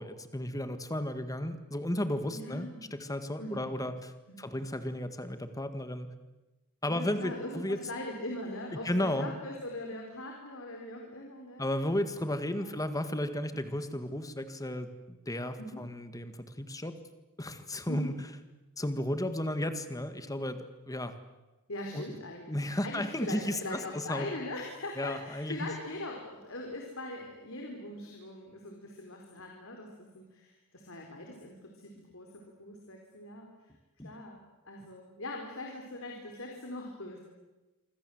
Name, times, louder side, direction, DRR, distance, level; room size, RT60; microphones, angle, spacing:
voice 1, 0.0-4.1 4.4-6.1 6.8-7.8 8.7-9.3 11.6-17.0 17.4-18.1 18.8-20.6 20.9-21.1 21.9-22.0 22.5-24.3 25.0-25.7 34.0-34.1, left 1 dB, 15° left, 10 dB, 1.9 m, -34 dB
voice 2, 2.3-2.8 3.4-3.8 4.3-4.6 6.9-11.6 12.1-12.8 15.6-15.8 17.9-18.1 21.7-33.5 34.0-34.4 34.6-37.2, left 1 dB, 65° left, 1 dB, 4.4 m, -41 dB
27.0 x 25.5 x 8.0 m, 1.1 s
head